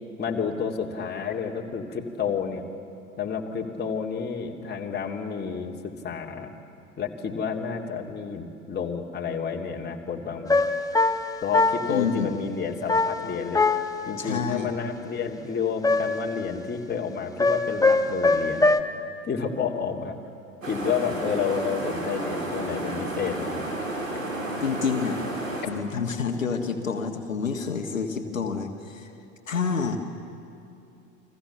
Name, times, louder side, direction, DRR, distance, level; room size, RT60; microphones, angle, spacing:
voice 1, 0.2-2.6 3.2-6.5 7.0-10.7 11.4-13.7 14.1-18.8 19.3-20.2 20.7-23.7 28.3-28.4, left 6 dB, 25° left, 1 dB, 2.8 m, -30 dB
sound 1, 10.5-12.1 12.9-14.1 15.8-16.4 17.4-18.8, left 3 dB, 10° left, 1.3 m, -22 dB
voice 2, 11.9-12.3 14.2-14.7 24.6-25.2 25.7-29.1 29.5-30.0, left 5 dB, 80° left, 4 dB, 1.6 m, -28 dB
sound 2, 20.6-25.6, right 1 dB, 85° right, 4.0 m, -31 dB
30.0 x 24.0 x 7.1 m, 2.7 s
figure-of-eight pair, 70°, 39 cm